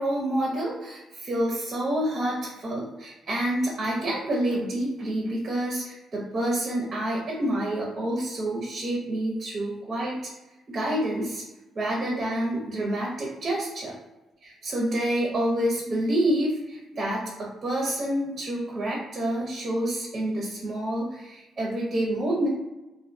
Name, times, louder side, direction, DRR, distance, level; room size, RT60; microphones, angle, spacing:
voice 1, 0.0-10.2 10.7-11.4 11.7-14.0 14.4-22.5, right 1 dB, 40° right, -3 dB, 0.6 m, -28 dB
2.4 x 2.2 x 2.5 m, 1.0 s
cardioid pair, 90°, 0 cm